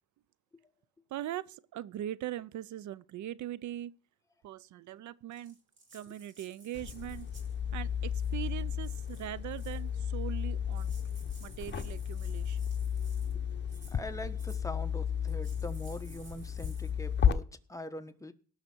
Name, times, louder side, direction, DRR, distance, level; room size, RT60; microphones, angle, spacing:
voice 1, 1.1-3.9 4.4-5.6 5.9-7.3 7.7-10.9 11.4-12.7, right 12 dB, 70° right, 0.6 m, -41 dB
Rattle (instrument), 5.3-7.6 8.1-8.5 8.8-9.9 10.4-10.5 10.7-13.3 13.7-14.0 14.4-14.6 15.3-16.9, right 2 dB, 40° right, 5.1 m, -57 dB
sound 1, 6.7-17.3, left 8 dB, 35° left, 1.0 m, -33 dB
voice 2, 13.9-18.3, left 1 dB, 10° left, 1.3 m, -43 dB
18.5 x 6.5 x 4.5 m
cardioid pair, 90°, 30 cm